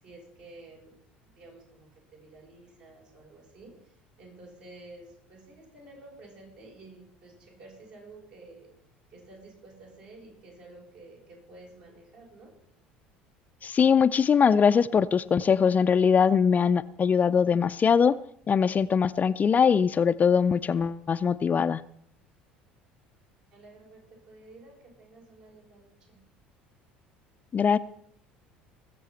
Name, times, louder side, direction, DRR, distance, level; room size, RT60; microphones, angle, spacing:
voice 1, 0.0-0.9 1.2-8.7 9.1-12.5 23.5-26.2, right 2 dB, 65° right, -3 dB, 6.8 m, -51 dB
voice 2, 13.6-18.1 18.5-21.8 27.5-27.8, left 6 dB, 30° left, 13 dB, 0.5 m, -22 dB
20.0 x 7.5 x 5.8 m, 0.68 s
figure-of-eight pair, 65°, 5 cm